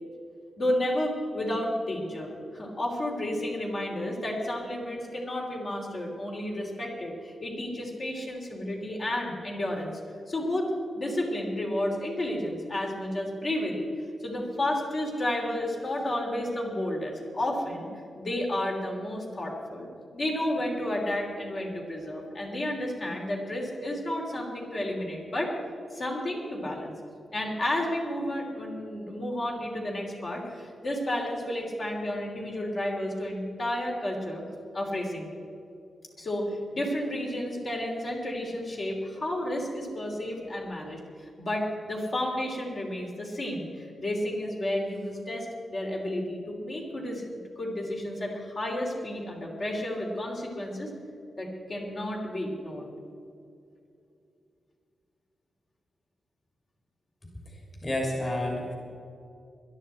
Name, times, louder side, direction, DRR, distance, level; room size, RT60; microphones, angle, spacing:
voice 1, 0.6-9.9 10.3-10.7 10.9-17.9 18.2-25.5 25.9-26.9 27.3-34.4 34.7-35.3 36.2-47.2 47.6-50.9 51.4-52.9, left 1 dB, 45° left, -1 dB, 3.2 m, -31 dB
voice 2, 57.5-58.7, left 1 dB, 30° left, -1 dB, 2.9 m, -31 dB
21.0 x 11.5 x 4.4 m, 2.6 s
wide cardioid pair, 115°, 0 cm